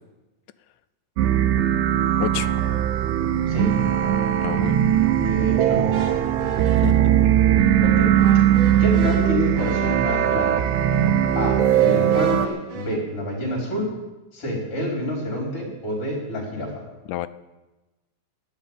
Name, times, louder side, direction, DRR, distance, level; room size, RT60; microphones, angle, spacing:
sound 1, 1.2-12.5, right 11 dB, 75° right, 2.0 m, -20 dB
voice 1, 2.2-2.5 4.4-4.8 6.8-7.2 17.1-17.3, left 14 dB, 90° left, 13 dB, 2.2 m, -29 dB
Alarm, 2.4-8.2, right 5 dB, 15° right, 5.8 m, -37 dB
voice 2, 5.2-6.0 7.8-8.2 8.8-10.7 11.4-13.9 14.3-16.8, left 1 dB, 45° left, -1 dB, 4.9 m, -28 dB
sound 2, 5.9-13.0, right 3 dB, 50° right, 1.8 m, -33 dB
12.5 x 9.5 x 8.8 m, 1.1 s
omnidirectional pair, 3.6 m